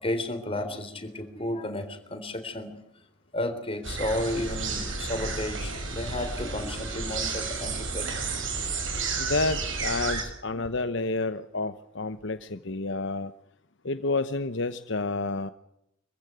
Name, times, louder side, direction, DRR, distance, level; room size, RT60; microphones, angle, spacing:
voice 1, 0.0-2.8 3.3-8.4 10.6-10.7, left 1 dB, 30° left, 3.6 m, -33 dB
sound 1, 3.8-10.2, right 4 dB, 75° right, 6.6 m, -32 dB
voice 2, 9.2-13.3 13.8-15.5, left 3 dB, 65° left, 1.0 m, -29 dB
25.0 x 15.5 x 9.5 m
head